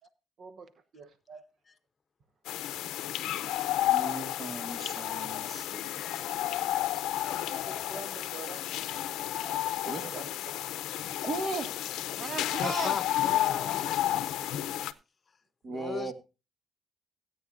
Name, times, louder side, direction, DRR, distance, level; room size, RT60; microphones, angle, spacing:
voice 1, 0.4-1.4 7.3-10.6, right 5 dB, 60° right, 1.2 m, -48 dB
sound 1, 2.4-14.9, left 13 dB, 90° left, 0.6 m, -31 dB
voice 2, 3.9-6.5 6.9-7.0 9.9-10.1 11.0-11.7 12.2-13.0 15.6-16.1, right 3 dB, 45° right, 2.1 m, -37 dB
sound 2, 4.8-5.6 6.4-6.8 7.2-7.5 9.4-9.7, left 2 dB, 10° left, 1.9 m, -52 dB
voice 3, 12.6-14.4 15.7-16.1, left 5 dB, 40° left, 0.8 m, -38 dB
16.5 x 8.9 x 2.6 m
cardioid pair, 90°, 0 cm